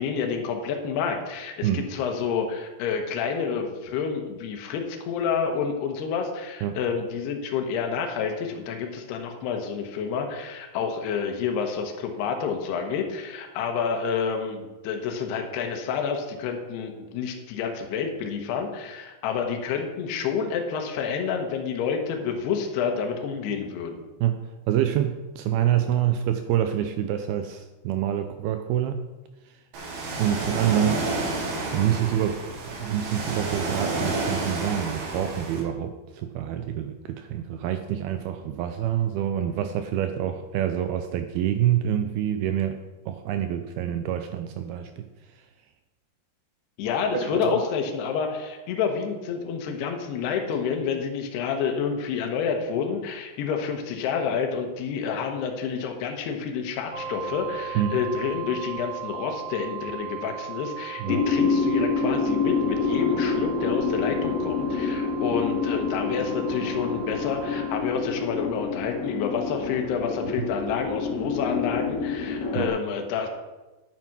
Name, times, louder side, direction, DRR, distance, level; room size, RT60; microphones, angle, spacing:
voice 1, 0.0-24.0 46.8-73.3, left 6 dB, 75° left, 3 dB, 3.1 m, -29 dB
voice 2, 24.7-29.1 30.2-31.0 31.7-42.8 43.1-45.1 47.1-47.6 57.8-58.0 61.0-61.3 72.6-72.7, right 10 dB, 85° right, 8 dB, 2.2 m, -26 dB
Ocean, 29.7-35.6, right 2 dB, 60° right, 3.8 m, -30 dB
sound 1, 56.9-67.7, right 8 dB, 40° right, 5.4 m, -38 dB
sound 2, 61.1-72.7, left 4 dB, 55° left, 3.0 m, -27 dB
9.6 x 9.2 x 6.0 m, 1.1 s
omnidirectional pair, 5.1 m